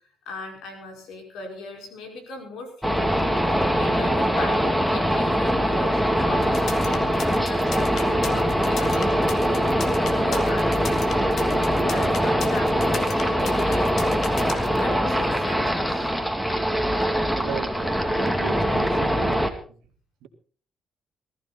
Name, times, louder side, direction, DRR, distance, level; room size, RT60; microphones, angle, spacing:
voice 1, 0.3-3.2 3.8-9.7 10.2-11.3 11.8-13.9 14.4-16.1, left 2 dB, 85° left, 4 dB, 5.2 m, -38 dB
sound 1, 2.8-19.5, equal, 5° left, 2.3 m, -22 dB
sound 2, 6.4-14.8, left 6 dB, 65° left, 2.1 m, -36 dB
voice 2, 17.4-19.5 20.2-20.3, right 8 dB, 90° right, 6 dB, 2.1 m, -35 dB
19.5 x 14.0 x 4.2 m, 0.43 s
cardioid pair, 90°, 0 cm